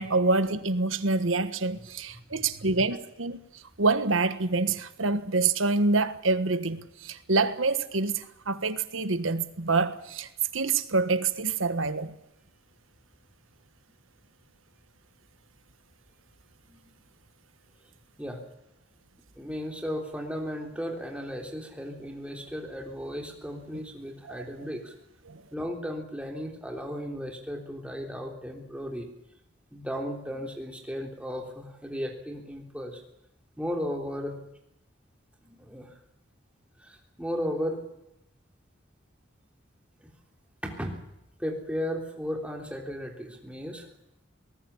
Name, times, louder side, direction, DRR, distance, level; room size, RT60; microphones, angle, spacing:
voice 1, 0.0-3.4 3.8-12.1 25.3-25.4, right 3 dB, 90° right, 1.4 m, -26 dB
voice 2, 2.3-2.6 16.7-16.8 18.2-18.4 19.4-25.0 25.5-29.1 29.7-33.0 33.6-34.4 35.4-36.0 36.8-37.8 40.0-40.1 40.6-40.9 41.4-43.9, equal, 5° right, 3.4 m, -35 dB
23.5 x 19.5 x 7.2 m
head